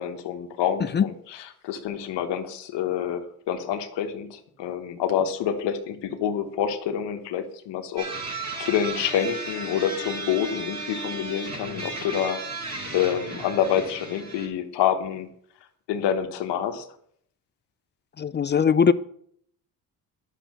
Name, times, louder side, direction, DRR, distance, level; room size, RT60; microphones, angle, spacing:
voice 1, 0.0-8.1 8.6-12.4 12.9-15.3 15.9-16.9, left 9 dB, 85° left, 1.2 m, -27 dB
sound 1, 8.0-14.5, right 3 dB, 40° right, 4.5 m, -35 dB
voice 2, 18.2-18.9, left 6 dB, 30° left, 0.4 m, -20 dB
10.0 x 6.6 x 6.2 m
cardioid pair, 95°, 41 cm